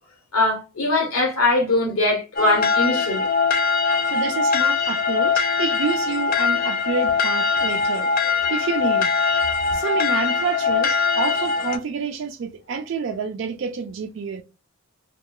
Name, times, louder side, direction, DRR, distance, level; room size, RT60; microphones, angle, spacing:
voice 1, 0.3-3.2, left 2 dB, 85° left, 1.0 m, -21 dB
sound 1, 2.4-11.8, left 5 dB, 40° left, 0.4 m, -22 dB
voice 2, 4.0-8.1 8.5-9.1 9.7-14.4, right 5 dB, 55° right, 0.3 m, -28 dB
2.8 x 2.2 x 2.2 m
head